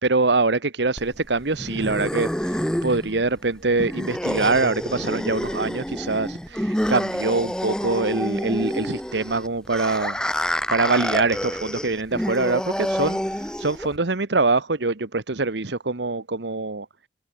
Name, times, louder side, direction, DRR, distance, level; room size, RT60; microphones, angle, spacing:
voice 1, 0.0-10.2 10.7-16.9, right 3 dB, 75° right, 1.3 m, -24 dB
sound 1, 1.0-14.0, equal, 5° left, 1.1 m, -28 dB
head